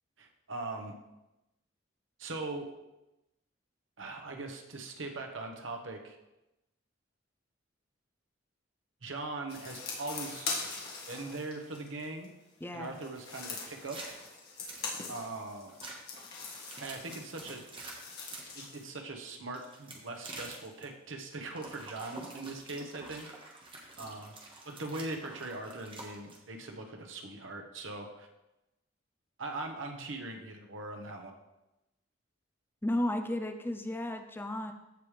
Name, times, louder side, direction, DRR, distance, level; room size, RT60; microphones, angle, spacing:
voice 1, 0.2-0.9 2.2-2.7 4.0-6.2 9.0-10.5 11.1-12.3 12.7-14.0 15.1-15.8 16.8-17.6 18.5-23.3 24.0-24.3 24.6-28.3 29.4-31.3, right 2 dB, 85° right, 3 dB, 1.2 m, -41 dB
sound 1, 9.5-12.3 12.8-18.8, left 4 dB, 55° left, 1.9 m, -42 dB
voice 2, 12.6-13.0 32.8-34.7, left 1 dB, 10° left, 6 dB, 0.5 m, -33 dB
sound 2, 13.5-15.2 15.7-15.9 16.5-18.6 19.5-20.8 21.5-26.4, right 2 dB, 25° right, 1.4 m, -47 dB
15.0 x 5.0 x 3.3 m, 0.96 s
head